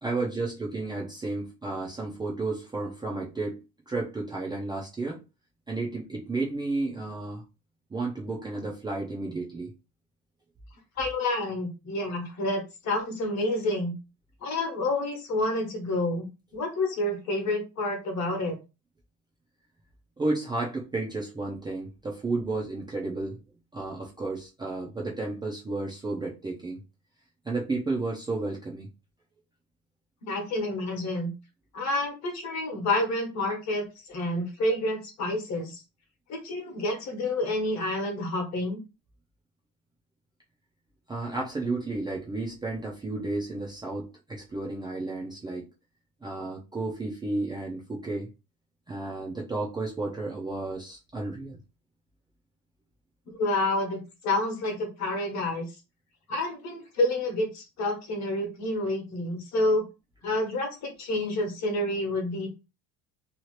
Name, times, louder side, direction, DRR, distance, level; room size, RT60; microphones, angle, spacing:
voice 1, 0.0-3.6 3.9-5.2 5.7-7.4 7.9-9.7 20.2-23.4 23.7-26.8 27.5-28.9 41.1-45.7 46.2-48.3 48.9-51.6 53.7-53.8, right 2 dB, 10° right, -3 dB, 0.5 m, -32 dB
voice 2, 11.0-13.9 14.4-16.3 16.5-18.6 30.3-31.3 31.7-35.8 36.3-38.8 53.4-55.7 56.3-59.8 60.2-62.5, left 2 dB, 45° left, 3 dB, 1.1 m, -29 dB
2.9 x 2.4 x 3.1 m, 0.28 s
cardioid pair, 150°, 39 cm